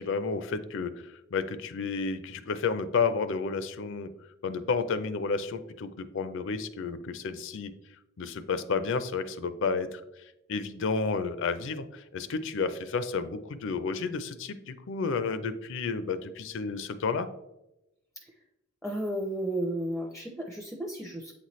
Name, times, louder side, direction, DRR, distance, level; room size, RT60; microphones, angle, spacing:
voice 1, 0.0-4.1 4.4-7.7 8.2-10.0 10.5-17.3, left 4 dB, 65° left, 12 dB, 0.5 m, -31 dB
voice 2, 18.8-21.3, right 1 dB, ahead, 3 dB, 0.5 m, -33 dB
8.0 x 4.1 x 3.1 m, 0.91 s
head